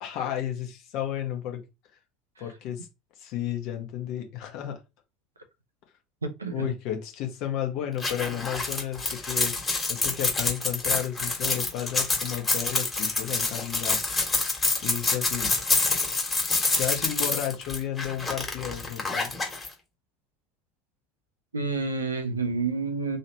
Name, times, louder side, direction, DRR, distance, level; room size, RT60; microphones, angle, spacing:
voice 1, 0.0-1.6 2.4-2.9 3.2-4.8 6.5-9.5 9.9-14.0 14.8-15.5 16.7-19.3, left 10 dB, 50° left, 1.0 m, -32 dB
voice 2, 6.2-6.7 21.5-23.2, right 4 dB, 80° right, 0.6 m, -29 dB
sound 1, 8.0-19.7, left 3 dB, 20° left, 1.6 m, -27 dB
3.1 x 2.8 x 2.9 m
figure-of-eight pair, 65°, 0 cm